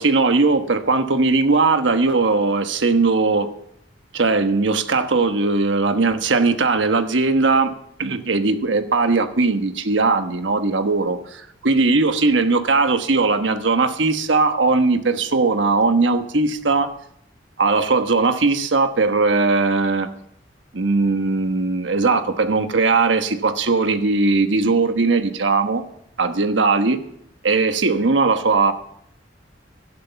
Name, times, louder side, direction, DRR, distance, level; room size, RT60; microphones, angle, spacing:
voice 1, 0.0-3.5 4.1-7.7 8.0-16.9 17.6-20.1 20.7-25.8 26.2-27.0 27.4-28.7, right 3 dB, 90° right, 8 dB, 1.2 m, -19 dB
12.0 x 11.0 x 5.9 m, 0.70 s
head